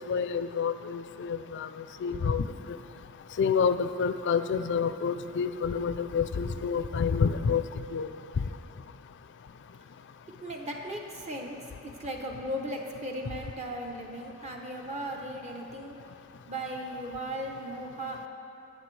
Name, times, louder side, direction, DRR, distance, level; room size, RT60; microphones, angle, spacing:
voice 1, 0.0-1.7 2.0-2.4 3.4-7.6 7.9-8.1, left 6 dB, 55° left, 11 dB, 0.4 m, -28 dB
voice 2, 10.4-11.6 11.8-16.0 16.5-18.3, right 1 dB, 30° right, 1 dB, 0.7 m, -37 dB
17.5 x 6.7 x 3.2 m, 3.0 s
head